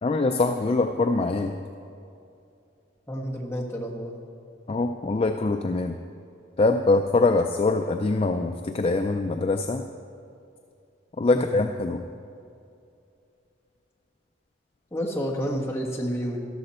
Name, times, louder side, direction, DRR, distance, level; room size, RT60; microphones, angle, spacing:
voice 1, 0.0-1.5 4.7-6.0 6.6-9.8 11.2-12.0, left 3 dB, 30° left, 6 dB, 0.3 m, -23 dB
voice 2, 3.1-4.2 11.3-11.5 14.9-16.4, equal, 15° left, -2 dB, 1.3 m, -30 dB
13.0 x 11.5 x 4.3 m, 2.6 s
head